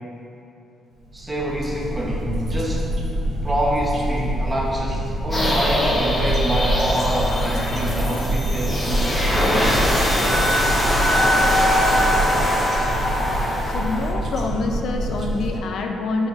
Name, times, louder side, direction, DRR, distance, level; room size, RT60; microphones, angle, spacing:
voice 1, 1.1-2.9 3.4-9.7, equal, 20° right, -4 dB, 0.8 m, -26 dB
sound 1, 1.1-15.6, right 1 dB, 55° right, 0.4 m, -26 dB
sound 2, 5.3-14.1, equal, 15° left, 0.9 m, -21 dB
voice 2, 13.6-16.3, left 3 dB, 70° left, 2 dB, 0.4 m, -26 dB
5.5 x 2.5 x 2.4 m, 2.8 s
cardioid pair, 90°, 0 cm